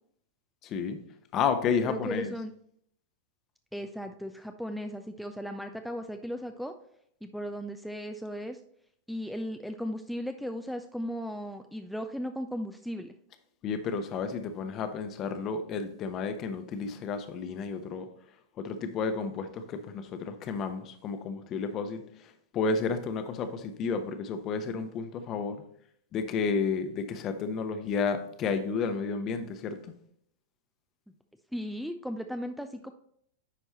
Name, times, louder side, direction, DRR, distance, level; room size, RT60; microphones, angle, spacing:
voice 1, 0.6-1.0 1.3-2.3 13.6-18.1 18.6-22.0 22.5-25.6 26.1-29.8, left 5 dB, 35° left, 8 dB, 0.8 m, -31 dB
voice 2, 1.8-2.5 3.7-6.7 7.2-8.6 9.1-13.1 31.5-32.9, equal, ahead, 5 dB, 0.4 m, -36 dB
10.0 x 4.5 x 3.0 m, 0.68 s
figure-of-eight pair, 95°, 0 cm